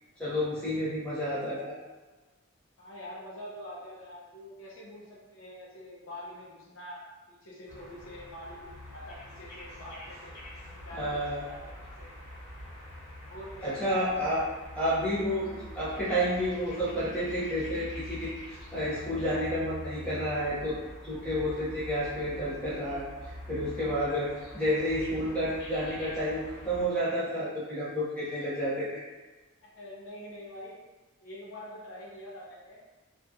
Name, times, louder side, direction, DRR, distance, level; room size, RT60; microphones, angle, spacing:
voice 1, 0.2-1.8 10.9-11.4 13.6-14.4 14.8-23.1 23.5-29.0, equal, 5° left, -11 dB, 0.8 m, -30 dB
voice 2, 2.8-10.3 10.6-12.1 13.2-14.1 29.6-30.8 31.2-32.8, left 1 dB, 65° left, -5 dB, 0.6 m, -45 dB
sound 1, 7.7-26.9, left 1 dB, 50° left, 1.5 m, -45 dB
2.9 x 2.4 x 2.3 m, 1.2 s
head